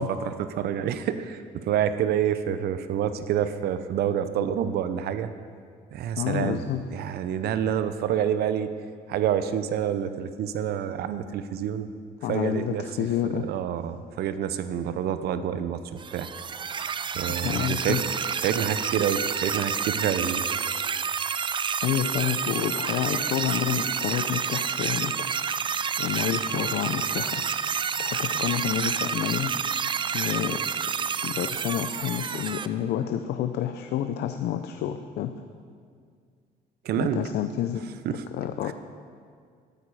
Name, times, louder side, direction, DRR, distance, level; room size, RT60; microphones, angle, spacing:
voice 1, 0.0-5.3 5.9-6.7 6.9-8.7 9.1-11.9 12.3-12.9 13.3-16.3 17.1-18.0 18.4-20.5 36.8-37.2 38.0-38.2 38.6-38.7, right 9 dB, 70° right, 11 dB, 0.7 m, -28 dB
voice 2, 6.2-6.8 12.2-13.5 17.3-18.0 21.8-25.3 26.0-27.4 28.0-29.6 30.1-30.6 31.2-35.4 37.0-37.8 38.1-38.7, left 10 dB, 75° left, 8 dB, 0.6 m, -29 dB
sound 1, 16.0-32.7, right 6 dB, 30° right, 0.4 m, -29 dB
13.0 x 12.5 x 4.8 m, 2.1 s
cardioid pair, 110°, 17 cm